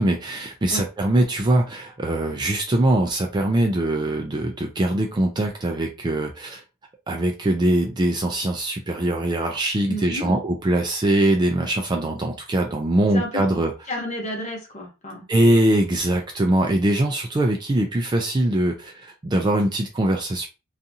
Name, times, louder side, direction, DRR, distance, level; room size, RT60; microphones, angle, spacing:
voice 1, 0.0-6.6 7.1-13.7 15.3-20.5, right 1 dB, 20° right, 2 dB, 0.3 m, -22 dB
voice 2, 9.9-10.4 13.1-15.2, equal, 30° left, 0 dB, 0.9 m, -32 dB
2.6 x 2.4 x 2.6 m, 0.29 s
head